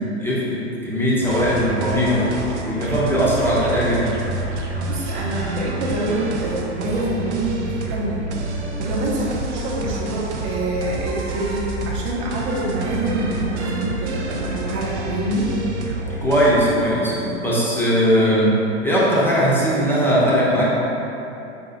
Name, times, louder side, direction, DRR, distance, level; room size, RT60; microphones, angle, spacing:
voice 1, 0.0-2.3 2.6-4.2 16.2-20.7, equal, 5° left, -7 dB, 0.6 m, -19 dB
sound 1, 1.2-16.5, right 2 dB, 85° right, 0.5 m, -28 dB
voice 2, 4.5-15.5, right 2 dB, 45° right, -4 dB, 0.8 m, -26 dB
4.7 x 2.7 x 2.5 m, 2.9 s
figure-of-eight pair, 90°, 34 cm